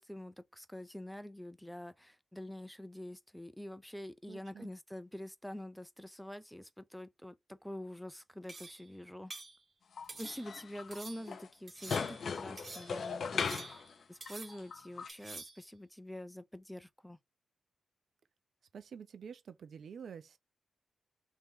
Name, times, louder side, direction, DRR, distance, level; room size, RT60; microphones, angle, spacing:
voice 1, 0.0-9.3 10.2-13.8 14.1-17.2, left 1 dB, ahead, 0.5 m, -46 dB
voice 2, 4.3-4.7 18.7-20.4, right 7 dB, 65° right, 0.6 m, -48 dB
sound 1, 8.5-8.9 9.3-9.6 10.1-10.6 10.9-11.3 11.7-12.3 12.6-13.0 13.4-14.0 14.2-14.7 15.1-15.6, right 3 dB, 30° right, 1.2 m, -48 dB
sound 2, 10.0-11.0 11.3-11.5 11.8-13.9 14.3-15.1, left 6 dB, 60° left, 0.4 m, -38 dB
3.0 x 2.7 x 3.6 m
cardioid pair, 100°, 0 cm